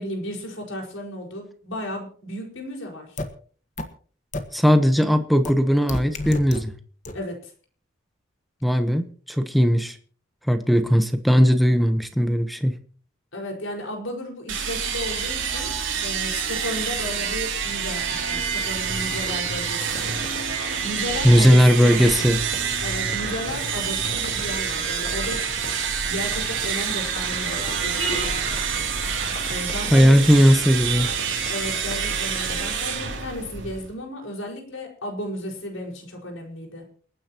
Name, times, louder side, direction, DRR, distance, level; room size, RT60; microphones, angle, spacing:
voice 1, 0.0-3.2 7.1-7.5 13.3-15.7 16.0-20.2 20.8-22.0 22.8-25.4 26.0-28.4 29.5-30.2 31.5-36.9, left 1 dB, 75° left, 1 dB, 5.1 m, -34 dB
sound 1, 3.2-3.3 3.8-3.9 4.3-4.4 5.5-5.6 5.9-6.6 7.1-7.2, left 2 dB, 35° left, 1.5 m, -28 dB
voice 2, 4.5-6.7 8.6-10.0 10.5-12.7 21.2-22.4 29.9-31.1, equal, ahead, 8 dB, 1.1 m, -18 dB
sound 2, 14.5-33.9, right 6 dB, 70° right, 3.0 m, -27 dB
sound 3, 19.1-32.7, left 2 dB, 50° left, 3.8 m, -38 dB
29.0 x 9.8 x 3.0 m, 0.44 s
head